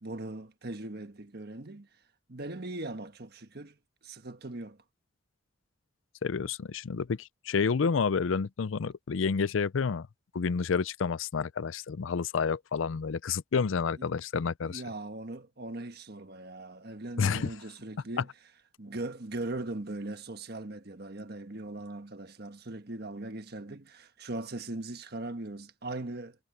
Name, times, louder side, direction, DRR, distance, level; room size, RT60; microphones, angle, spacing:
voice 1, 0.0-1.9 2.3-3.8 4.0-4.8 14.0-14.1 14.6-18.3 18.8-26.4, right 2 dB, 55° right, 1.4 m, -39 dB
voice 2, 6.2-10.1 10.3-14.8 17.2-17.5, left 5 dB, 80° left, 0.5 m, -29 dB
head